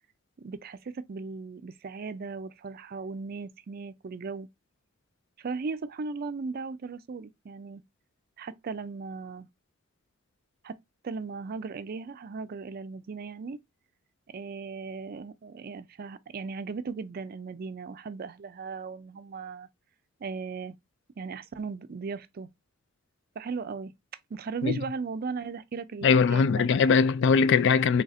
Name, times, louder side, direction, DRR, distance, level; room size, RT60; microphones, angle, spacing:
voice 1, 0.4-4.5 5.4-7.8 8.4-9.5 10.6-10.8 11.0-13.6 14.3-19.7 20.2-20.8 21.2-22.5 23.4-23.9 24.3-26.9, right 4 dB, 45° right, 0.4 m, -37 dB
voice 2, 26.0-28.0, left 5 dB, 60° left, 0.3 m, -21 dB
3.4 x 2.5 x 4.0 m
head